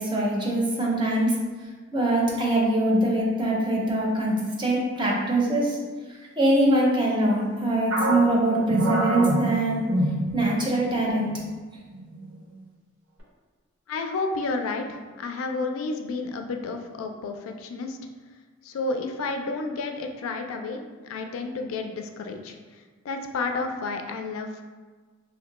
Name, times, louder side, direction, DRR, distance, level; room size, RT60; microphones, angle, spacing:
voice 1, 0.0-1.3 1.9-5.8 6.4-9.9 10.3-11.3, right 1 dB, 25° right, -3 dB, 0.6 m, -23 dB
sound 1, 7.9-10.8 11.1-11.3 11.9-12.4, right 1 dB, 70° right, 0.8 m, -26 dB
voice 2, 13.9-18.0 18.6-24.6, left 3 dB, 85° left, 4 dB, 0.3 m, -31 dB
2.6 x 2.1 x 3.9 m, 1.4 s
head